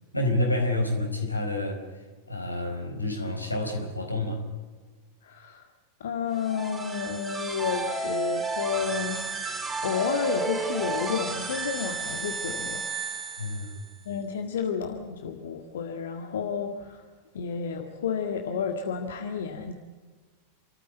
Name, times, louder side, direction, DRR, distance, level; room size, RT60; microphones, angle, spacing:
voice 1, 0.1-4.4 13.4-13.8, left 1 dB, 85° left, 3 dB, 4.6 m, -29 dB
voice 2, 5.2-5.7 6.0-9.4 9.8-12.8 14.1-17.1 17.3-19.7, left 6 dB, 60° left, 4 dB, 1.8 m, -31 dB
sound 1, 6.3-14.0, right 4 dB, 10° right, 3.3 m, -33 dB
29.0 x 14.0 x 9.2 m, 1.4 s
figure-of-eight pair, 90°, 0 cm